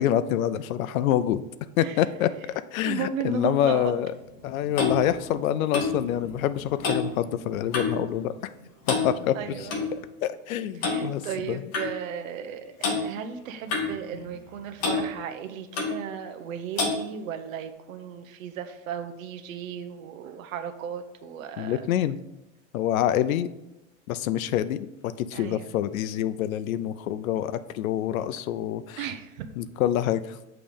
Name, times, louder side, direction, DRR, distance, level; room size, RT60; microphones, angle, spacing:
voice 1, 0.0-1.4 1.8-2.3 2.7-4.1 4.4-8.5 8.9-9.4 10.2-11.2 11.5-11.6 21.6-22.2 22.7-23.5 24.1-29.0 29.6-30.4, left 11 dB, 80° left, 14 dB, 0.6 m, -26 dB
voice 2, 2.8-3.9 9.3-9.8 10.7-21.9 25.3-25.6 29.0-29.5, right 8 dB, 75° right, 8 dB, 0.8 m, -35 dB
Clock, 4.2-8.1 8.3-8.6 8.8-9.9 10.8-11.0 11.7-11.9 12.8-13.0 13.7-14.5 14.8-15.0 15.7-16.0 16.8-17.0, left 3 dB, 20° left, 0.4 m, -29 dB
7.1 x 3.4 x 5.2 m, 0.95 s
supercardioid pair, 175°, 40 cm